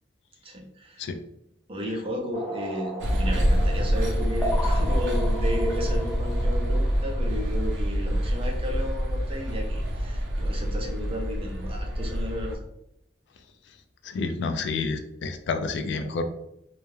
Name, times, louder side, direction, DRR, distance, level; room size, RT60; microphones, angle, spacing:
voice 1, 0.4-1.0 1.7-12.6, equal, 30° right, 0 dB, 0.5 m, -33 dB
sound 1, 2.3-7.7, equal, 5° left, 0.7 m, -36 dB
sound 2, 3.0-12.6, equal, 80° right, 0.5 m, -26 dB
voice 2, 14.1-16.2, left 4 dB, 70° left, 8 dB, 0.3 m, -29 dB
2.2 x 2.0 x 3.1 m, 0.79 s
head